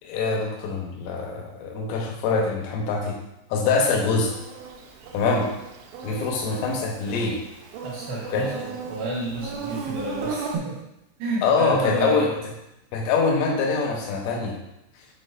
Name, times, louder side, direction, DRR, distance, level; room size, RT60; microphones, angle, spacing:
voice 1, 0.0-3.2 3.5-4.3 5.1-5.5 6.0-7.4 8.3-8.5 11.4-12.3 12.9-14.6, left 4 dB, 80° left, 0 dB, 3.4 m, -24 dB
Insect, 4.3-10.6, right 5 dB, 80° right, 3.2 m, -36 dB
voice 2, 7.8-10.8 11.2-12.3, right 2 dB, 65° right, -6 dB, 2.5 m, -30 dB
8.8 x 4.6 x 2.6 m, 0.89 s
omnidirectional pair, 5.8 m